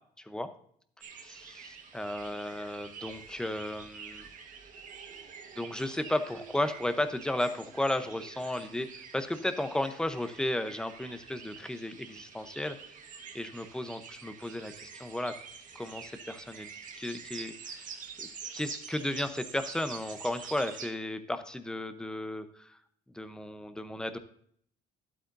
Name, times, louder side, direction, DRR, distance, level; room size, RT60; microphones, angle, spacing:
voice 1, 0.2-0.5 1.2-4.3 5.6-12.8 13.3-15.4 15.7-16.7 17.0-17.8 18.2-18.3 18.5-22.8 23.1-24.2, left 1 dB, 5° left, 9 dB, 0.8 m, -34 dB
sound 1, 1.0-20.9, right 6 dB, 50° right, 1.5 m, -47 dB
11.5 x 8.5 x 2.6 m, 0.63 s
cardioid pair, 110°, 17 cm